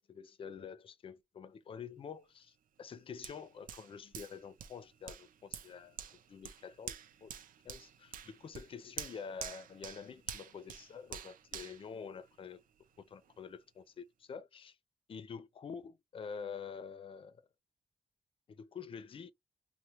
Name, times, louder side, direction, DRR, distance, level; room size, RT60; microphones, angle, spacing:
voice 1, 0.1-6.0 6.3-7.0 7.2-7.3 7.7-12.6 13.0-14.8 15.1-17.4 18.5-19.3, left 6 dB, 40° left, 0.4 m, -47 dB
Hands, 3.2-12.8 13.2-13.4, right 9 dB, 80° right, 0.4 m, -48 dB
2.8 x 2.0 x 2.9 m
wide cardioid pair, 135°, 14 cm